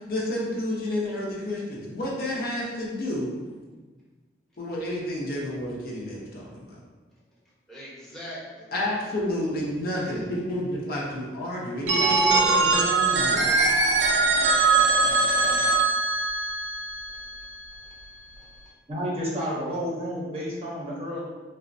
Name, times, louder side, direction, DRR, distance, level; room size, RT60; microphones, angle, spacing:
voice 1, 0.0-3.6 4.6-6.8 8.7-13.5, left 1 dB, 55° left, -4 dB, 0.6 m, -30 dB
voice 2, 7.7-8.7 9.9-10.6 16.4-16.5 17.1-17.3 17.8-17.9 18.4-18.5, equal, ahead, -9 dB, 0.7 m, -43 dB
Telephone, 11.9-17.6, right 3 dB, 80° right, 0.3 m, -22 dB
voice 3, 18.9-21.2, equal, 35° right, -5 dB, 0.6 m, -30 dB
3.3 x 2.0 x 2.5 m, 1.3 s
head